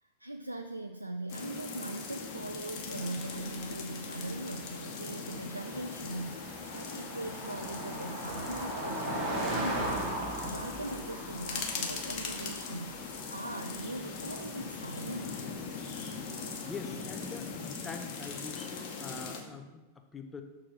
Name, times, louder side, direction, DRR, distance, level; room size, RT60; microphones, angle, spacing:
voice 1, 0.0-15.4, right 1 dB, 85° right, 6 dB, 0.3 m, -40 dB
sound 1, 1.3-19.4, left 5 dB, 40° left, 1.2 m, -40 dB
Car passing by, 2.9-16.7, right 1 dB, 40° right, 1.5 m, -40 dB
voice 2, 16.3-20.4, left 4 dB, 15° left, 5 dB, 0.7 m, -44 dB
6.6 x 3.7 x 5.8 m, 1.2 s
figure-of-eight pair, 90°, 0 cm